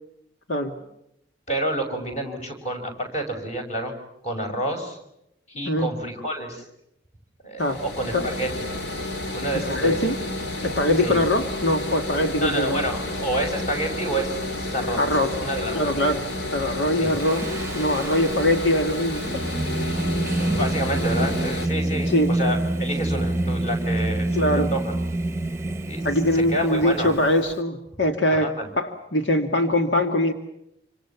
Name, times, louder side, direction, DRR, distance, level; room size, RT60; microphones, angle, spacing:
voice 1, 1.5-3.9 4.2-5.0 5.5-6.7 7.4-8.8 9.3-10.0 11.0-11.2 12.4-15.9 17.0-17.2 20.3-24.9 25.8-26.1 26.3-27.2 28.3-28.7, right 1 dB, 35° left, 3 dB, 6.3 m, -29 dB
sound 1, 7.6-21.7, left 2 dB, 65° left, 2.5 m, -31 dB
voice 2, 9.7-10.2 10.6-12.8 15.0-15.3 15.7-16.2 16.5-17.5 17.7-19.4 22.0-22.3 24.3-24.7 26.0-30.3, left 1 dB, 85° left, 5 dB, 2.2 m, -22 dB
Singing, 17.1-27.5, right 2 dB, 15° right, 1.0 m, -27 dB
28.0 x 26.5 x 7.3 m, 0.80 s
head